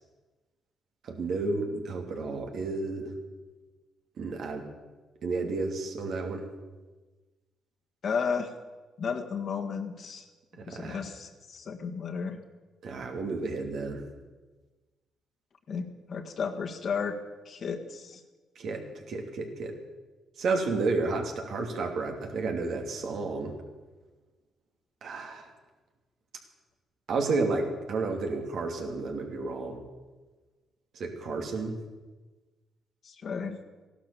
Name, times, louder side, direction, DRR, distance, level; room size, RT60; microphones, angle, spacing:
voice 1, 1.0-3.1 4.2-4.7 5.2-6.5 10.6-11.0 12.8-14.0 18.6-18.8 19.1-19.8 20.4-23.5 25.0-25.5 27.1-29.8 30.9-31.7, right 3 dB, 65° right, 3 dB, 2.7 m, -31 dB
voice 2, 8.0-8.5 9.0-10.2 10.7-12.4 15.7-17.1 17.4-18.2 33.0-33.6, left 6 dB, 55° left, 5 dB, 1.7 m, -33 dB
15.0 x 12.0 x 7.0 m, 1.3 s
cardioid pair, 90°, 0 cm